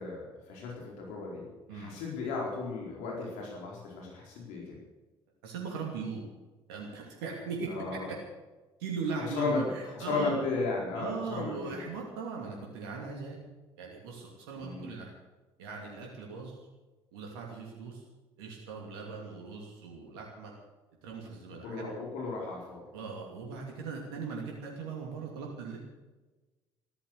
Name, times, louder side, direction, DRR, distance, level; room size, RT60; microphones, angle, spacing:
voice 1, 0.0-1.4 1.7-4.8 7.7-8.1 9.2-11.8 14.6-14.9 21.6-22.8, left 3 dB, 70° left, -2 dB, 4.5 m, -35 dB
voice 2, 5.4-6.2 6.7-8.2 8.8-10.3 10.9-13.4 13.8-15.1 15.6-16.6 17.1-18.0 18.4-20.5 21.0-21.9 22.9-25.8, right 4 dB, 80° right, -1 dB, 2.8 m, -39 dB
15.0 x 13.0 x 6.7 m, 1.2 s
hypercardioid pair, 55°, 13 cm